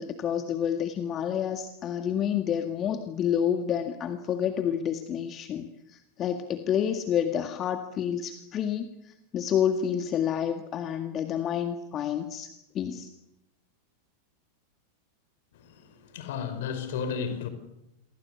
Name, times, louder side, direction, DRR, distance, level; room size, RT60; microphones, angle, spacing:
voice 1, 0.0-13.1, left 9 dB, 30° left, 1.8 m, -29 dB
voice 2, 15.5-17.5, left 6 dB, 55° left, 5.3 m, -33 dB
29.0 x 23.0 x 8.3 m
figure-of-eight pair, 90°, 0 cm